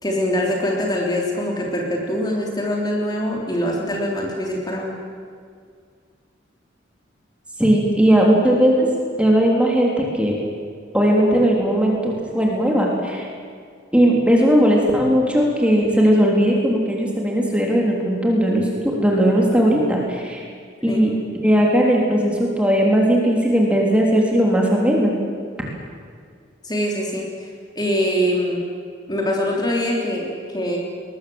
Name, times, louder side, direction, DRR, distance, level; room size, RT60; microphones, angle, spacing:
voice 1, 0.0-4.9 20.9-21.0 26.6-27.5 27.8-28.7 29.1-30.8, equal, 20° left, -1 dB, 3.3 m, -23 dB
voice 2, 7.6-8.9 9.2-10.3 10.9-13.3 13.9-20.5 20.8-21.1 21.4-25.1, equal, 5° right, -2 dB, 3.5 m, -18 dB
22.0 x 20.5 x 7.9 m, 2.1 s
head